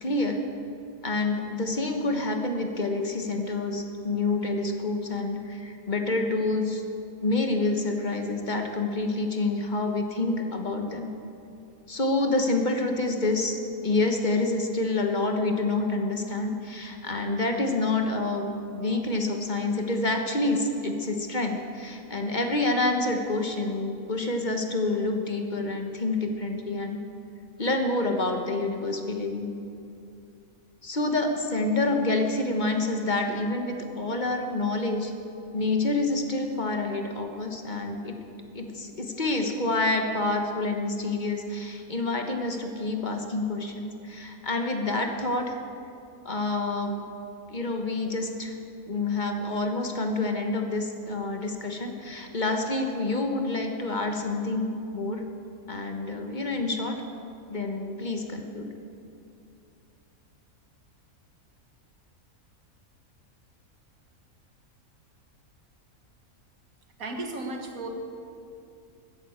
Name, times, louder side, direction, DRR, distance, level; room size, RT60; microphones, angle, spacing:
voice 1, 0.0-0.4 1.0-6.8 7.2-11.1 11.9-27.0 27.6-29.5 30.8-35.1 35.5-38.2 38.5-45.6 46.2-47.0 47.5-48.6 48.9-55.2 55.7-57.0 57.5-58.7, left 2 dB, 35° left, 4 dB, 1.2 m, -28 dB
voice 2, 67.0-67.9, right 2 dB, 75° right, 3 dB, 2.0 m, -34 dB
14.0 x 9.1 x 8.7 m, 2.6 s
omnidirectional pair, 1.5 m